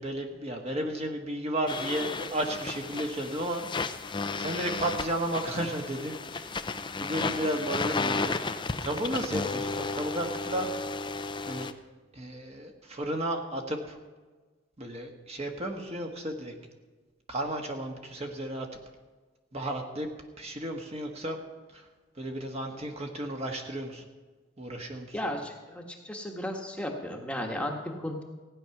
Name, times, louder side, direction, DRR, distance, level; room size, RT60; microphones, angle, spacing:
voice 1, 0.0-3.6 4.4-6.7 7.0-8.4 8.8-10.7 11.5-11.7 12.1-14.0 14.8-16.5 17.3-18.7 19.5-20.1 20.4-21.4 21.7-21.9 22.1-24.0 24.6-25.3, right 1 dB, 35° right, 2 dB, 1.5 m, -33 dB
sound 1, 1.7-11.7, left 3 dB, 25° left, 0.6 m, -33 dB
voice 2, 25.1-28.2, left 1 dB, 5° left, 1 dB, 1.3 m, -34 dB
16.0 x 9.7 x 5.9 m, 1.3 s
head